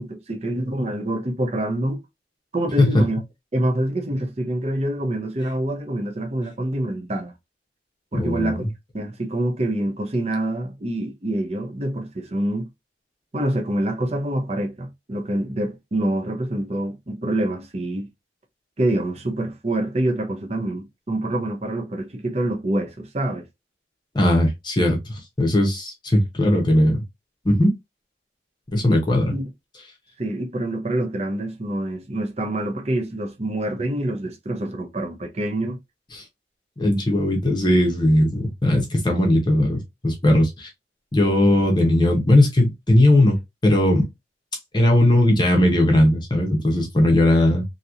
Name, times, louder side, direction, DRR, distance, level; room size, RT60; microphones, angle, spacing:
voice 1, 0.0-2.0 2.5-3.2 3.5-7.3 8.1-8.6 8.9-12.7 13.3-18.1 18.8-23.5 29.3-29.4 30.2-35.8, right 1 dB, 35° right, 0.8 m, -26 dB
voice 2, 8.2-8.7 24.1-27.0 27.4-27.7 28.7-29.3 36.1-36.2 36.8-40.7 41.1-44.1 44.7-47.6, left 1 dB, 25° left, 0.8 m, -18 dB
3.0 x 2.8 x 2.5 m
head